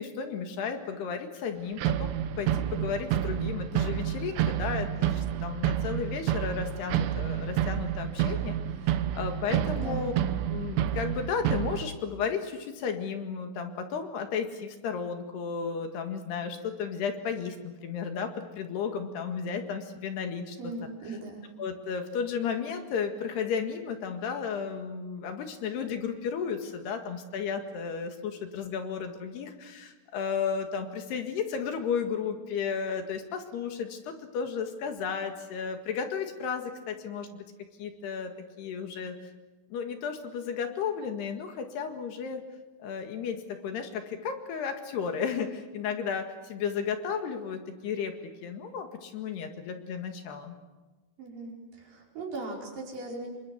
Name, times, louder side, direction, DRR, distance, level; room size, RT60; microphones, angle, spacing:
voice 1, 0.0-8.6 8.8-10.1 10.5-20.7 21.0-21.2 21.6-37.5 37.8-38.3 38.6-39.2 39.7-42.4 42.8-50.6, left 6 dB, 65° left, 6 dB, 3.7 m, -33 dB
sound 1, 1.8-11.8, right 10 dB, 70° right, 3.0 m, -29 dB
voice 2, 9.7-10.2 20.6-21.5 51.2-53.3, right 2 dB, 45° right, -1 dB, 6.5 m, -39 dB
27.5 x 25.0 x 7.9 m, 1.2 s
omnidirectional pair, 5.5 m